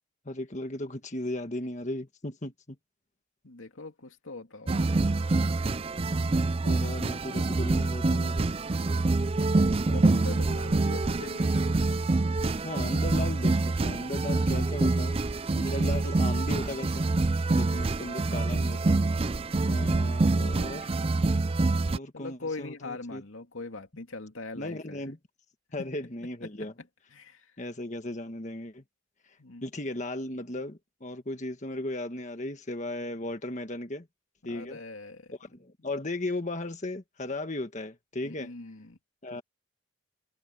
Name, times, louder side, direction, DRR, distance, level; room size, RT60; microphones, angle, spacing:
voice 1, 0.2-2.5 6.6-8.5 8.8-8.9 12.6-13.6 13.8-15.2 15.5-17.1 17.5-19.0 19.7-20.9 21.9-23.2 24.6-25.2 25.7-26.7 27.6-28.8 29.6-34.1 34.4-34.8 35.4-38.5 39.2-39.4, left 1 dB, 35° left, 1.5 m, -36 dB
voice 2, 3.4-4.9 9.9-11.6 19.8-19.9 22.1-25.1 25.8-25.9 26.4-26.7 27.1-27.5 29.4-29.6 34.5-35.3 38.2-39.0, left 3 dB, 85° left, 2.6 m, -41 dB
sound 1, 4.7-22.0, right 3 dB, 30° right, 0.5 m, -26 dB
sound 2, 12.2-17.1, left 2 dB, 15° left, 7.2 m, -56 dB
head